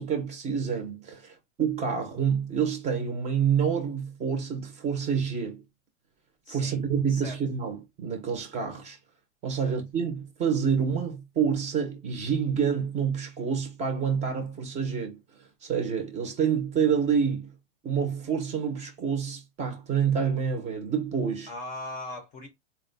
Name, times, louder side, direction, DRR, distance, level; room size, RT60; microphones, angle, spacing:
voice 1, 0.0-5.6 6.5-9.0 9.4-15.2 15.6-17.5 17.8-21.5, right 7 dB, 20° right, 0.7 m, -28 dB
voice 2, 6.4-6.8 7.1-7.4 9.5-9.8 21.5-22.5, left 2 dB, 20° left, 0.6 m, -39 dB
4.1 x 2.2 x 3.9 m
supercardioid pair, 160°, 39 cm